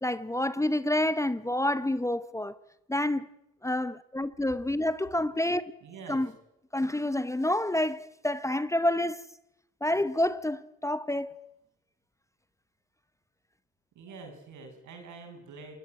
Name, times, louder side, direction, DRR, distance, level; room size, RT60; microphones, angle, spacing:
voice 1, 0.0-2.5 2.9-3.3 3.6-5.6 6.1-6.3 6.7-9.3 9.8-11.3, left 1 dB, 10° left, 0.9 m, -28 dB
voice 2, 5.8-6.2 14.0-15.8, right 4 dB, 75° right, 7.4 m, -46 dB
28.0 x 16.5 x 9.3 m
cardioid pair, 90°, 30 cm